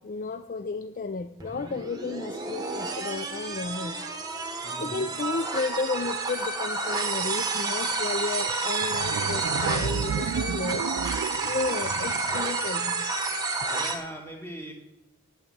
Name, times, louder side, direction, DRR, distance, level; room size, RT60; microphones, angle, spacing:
voice 1, 0.0-4.1 4.8-10.9 11.4-13.1, left 4 dB, 35° left, 9 dB, 0.4 m, -33 dB
sound 1, 1.4-14.0, right 3 dB, 15° right, 1.1 m, -30 dB
voice 2, 4.6-5.1 13.7-14.7, right 1 dB, 10° left, 1 dB, 2.0 m, -40 dB
sound 2, 8.5-8.6 8.8-12.6, right 7 dB, 70° right, 0.3 m, -32 dB
8.9 x 8.5 x 7.9 m, 0.90 s
head